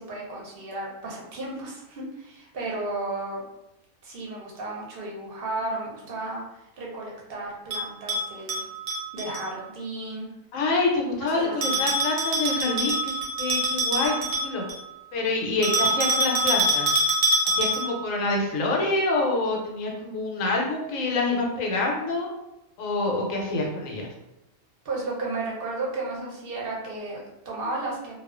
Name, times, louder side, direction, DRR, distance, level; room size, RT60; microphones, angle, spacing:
voice 1, 0.0-3.4 4.0-6.4 6.8-8.7 9.1-10.3 11.2-11.8 24.8-28.1, right 2 dB, 55° right, -3 dB, 0.8 m, -33 dB
Bell, 7.7-9.4 11.6-14.9 15.6-18.0, right 1 dB, 90° right, 1.1 m, -25 dB
voice 2, 10.5-13.1 13.4-14.6 15.1-17.0 17.5-22.3 22.8-24.1, left 2 dB, 90° left, 0 dB, 1.0 m, -26 dB
2.3 x 2.3 x 2.3 m, 0.89 s
omnidirectional pair, 1.4 m